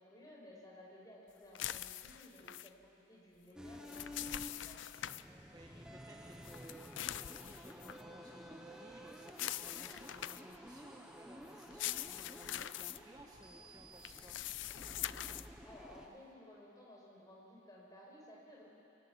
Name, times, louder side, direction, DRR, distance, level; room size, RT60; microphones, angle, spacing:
voice 1, 0.0-2.7 3.1-4.8 15.6-18.7, left 1 dB, 20° left, -3 dB, 5.2 m, -56 dB
sound 1, 1.6-2.7 3.7-5.2 6.4-8.0 9.3-10.6 11.6-13.0 14.0-15.5, left 13 dB, 80° left, 0.5 m, -43 dB
sound 2, 3.6-16.1, equal, 5° right, 1.3 m, -52 dB
voice 2, 5.5-14.4, right 1 dB, 20° right, -1 dB, 1.5 m, -58 dB
24.5 x 17.5 x 8.6 m, 2.8 s
head